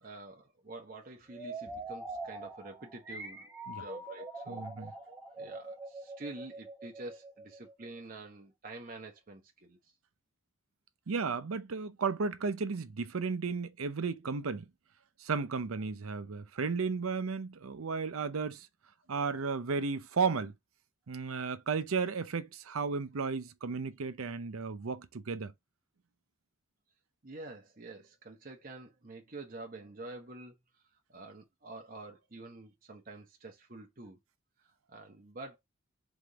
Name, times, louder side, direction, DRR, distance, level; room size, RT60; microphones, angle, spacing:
voice 1, 0.0-3.5 3.8-9.9 27.2-30.8 31.1-34.2 34.6-35.6, right 2 dB, 40° right, 0.9 m, -48 dB
sound 1, 1.3-8.0, right 2 dB, 10° right, 1.0 m, -44 dB
voice 2, 4.5-4.9 11.1-14.7 15.2-18.7 19.1-20.5 21.1-25.5, right 5 dB, 85° right, 0.6 m, -34 dB
4.0 x 3.6 x 3.4 m
head